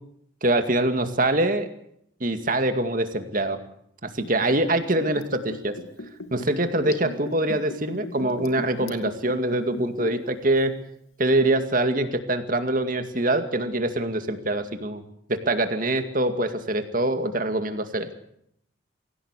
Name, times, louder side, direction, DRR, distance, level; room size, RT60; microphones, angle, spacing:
voice 1, 0.4-1.7 2.2-3.6 4.0-5.7 6.3-10.7 11.2-15.0 15.3-18.1, right 1 dB, 40° right, 8 dB, 2.2 m, -24 dB
Liquid, 4.2-10.3 10.6-10.7, left 1 dB, 85° left, 2.4 m, -37 dB
25.0 x 17.0 x 8.3 m, 0.72 s
head